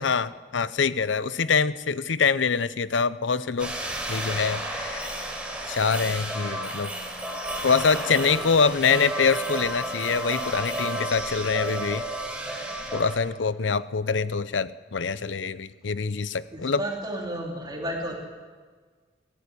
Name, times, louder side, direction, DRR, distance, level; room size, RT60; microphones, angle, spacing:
voice 1, 0.0-3.8 4.1-5.1 5.7-6.9 7.6-12.0 12.9-16.8, left 5 dB, 85° left, 16 dB, 0.7 m, -25 dB
sound 1, 3.6-13.1, right 1 dB, 5° right, 4.1 m, -32 dB
voice 2, 8.2-8.5 16.5-18.1, right 1 dB, 25° right, -1 dB, 3.2 m, -33 dB
21.5 x 14.0 x 9.8 m, 1.5 s
head